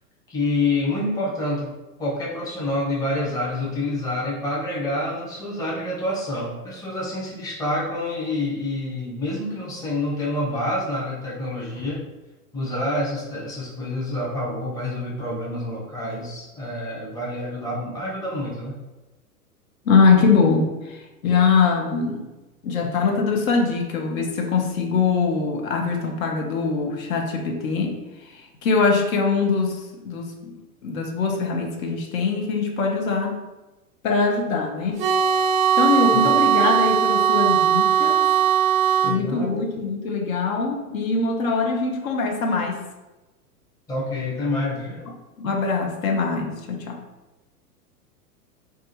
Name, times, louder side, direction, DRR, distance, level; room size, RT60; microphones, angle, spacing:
voice 1, 0.3-1.7 2.0-12.0 12.5-18.8 39.0-39.6 43.9-45.0, left 1 dB, 10° left, -5 dB, 0.6 m, -27 dB
voice 2, 19.9-22.3 22.6-30.5 30.8-33.4 34.0-35.0 35.8-38.2 39.0-42.8 45.4-47.0, left 4 dB, 65° left, 2 dB, 0.7 m, -22 dB
sound 1, 35.0-39.2, right 9 dB, 45° right, 0.5 m, -19 dB
2.4 x 2.4 x 4.0 m, 1.1 s
figure-of-eight pair, 100°, 46 cm